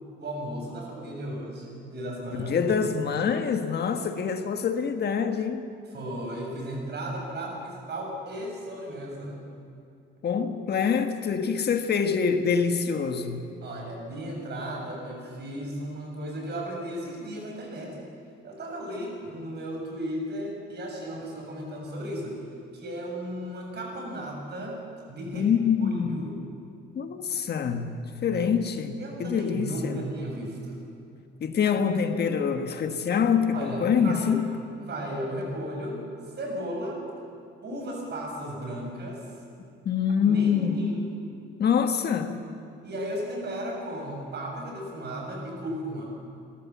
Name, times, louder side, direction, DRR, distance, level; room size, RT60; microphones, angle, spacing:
voice 1, 0.2-2.6 5.9-9.4 13.6-18.1 18.4-22.4 22.7-24.8 25.1-25.5 25.8-26.3 29.0-30.8 33.5-34.3 34.8-36.0 36.4-37.0 37.6-39.3 40.2-41.1 42.8-46.1, right 1 dB, 55° right, 7.0 m, -35 dB
voice 2, 2.4-5.7 10.2-13.4 25.3-26.2 26.9-30.0 31.4-34.5 39.8-40.9 41.6-42.4, left 6 dB, 55° left, 1.5 m, -25 dB
28.0 x 13.0 x 7.3 m
cardioid pair, 90°, 20 cm